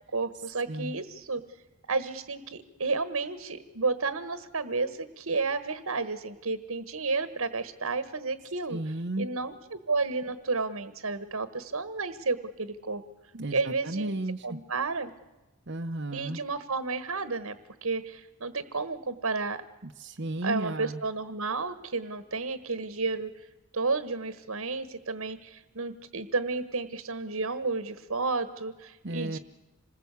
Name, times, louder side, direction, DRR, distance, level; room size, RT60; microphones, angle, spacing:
voice 1, 0.1-1.4 1.9-8.8 9.2-13.0 13.5-14.1 14.4-15.1 16.1-17.5 17.8-19.6 20.4-23.3 23.7-29.4, right 3 dB, 75° right, 13 dB, 1.4 m, -31 dB
voice 2, 8.7-9.3 13.3-14.6 15.7-16.4 19.8-21.0 29.0-29.4, right 1 dB, 50° right, 4 dB, 0.9 m, -34 dB
27.0 x 20.5 x 8.3 m, 1.0 s
head